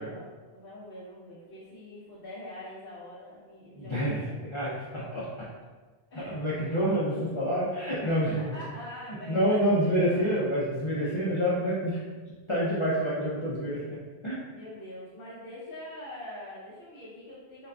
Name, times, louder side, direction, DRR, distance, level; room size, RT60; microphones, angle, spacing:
voice 1, 0.0-4.4 4.9-5.2 6.1-6.9 8.0-10.4 14.5-17.7, left 1 dB, 60° left, -8 dB, 0.9 m, -44 dB
voice 2, 3.7-5.5 6.1-8.5 9.3-12.0 12.5-14.0 14.2-14.4, equal, 40° left, -9 dB, 0.5 m, -28 dB
3.8 x 2.4 x 2.2 m, 1.4 s
omnidirectional pair, 1.1 m